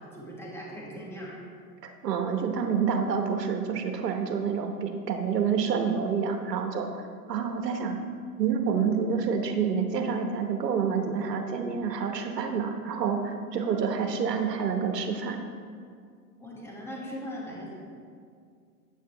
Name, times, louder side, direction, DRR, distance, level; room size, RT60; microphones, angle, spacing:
voice 1, 0.0-1.4 13.6-13.8 16.4-17.7, equal, 5° left, -4 dB, 1.5 m, -40 dB
voice 2, 1.8-6.9 7.3-8.0 8.4-15.4, right 6 dB, 80° right, 5 dB, 1.1 m, -28 dB
8.4 x 8.2 x 3.3 m, 2.2 s
hypercardioid pair, 105°, 48 cm